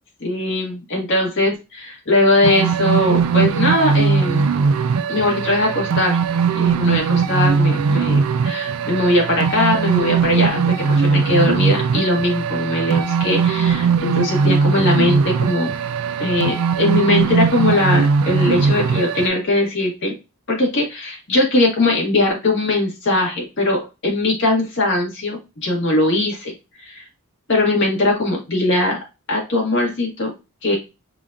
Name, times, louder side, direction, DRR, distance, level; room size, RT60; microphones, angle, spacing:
voice 1, 0.2-4.4 5.1-6.2 6.5-15.7 16.2-20.2 20.5-26.5 26.8-27.0 27.5-29.0 29.3-30.3 30.6-30.8, left 1 dB, 55° left, -1 dB, 1.6 m, -20 dB
sound 1, 2.4-19.3, right 5 dB, 70° right, 0.4 m, -19 dB
4.9 x 2.8 x 2.4 m, 0.27 s
head